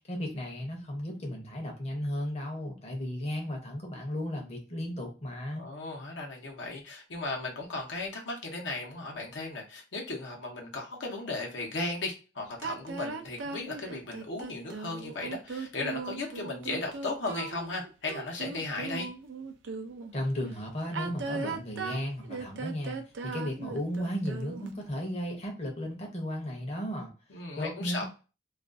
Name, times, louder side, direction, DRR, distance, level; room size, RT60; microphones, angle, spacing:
voice 1, 0.1-5.7 20.1-27.1 27.6-28.0, equal, 35° left, 1 dB, 0.7 m, -35 dB
voice 2, 5.6-19.1 27.3-28.0, left 3 dB, 80° left, 0 dB, 0.7 m, -36 dB
sound 1, 12.6-20.1 20.8-24.8, right 4 dB, 90° right, 0.4 m, -38 dB
2.4 x 2.3 x 2.4 m, 0.32 s
head